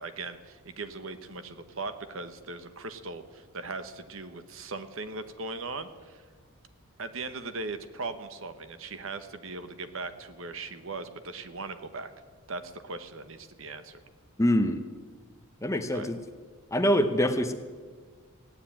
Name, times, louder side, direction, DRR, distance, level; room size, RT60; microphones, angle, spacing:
voice 1, 0.0-6.2 7.0-12.1 12.5-14.0 15.9-16.1, right 3 dB, 65° right, 10 dB, 1.1 m, -39 dB
voice 2, 14.4-14.8 15.6-16.2 16.7-17.5, equal, 15° left, 7 dB, 0.8 m, -24 dB
16.0 x 9.7 x 8.7 m, 1.5 s
head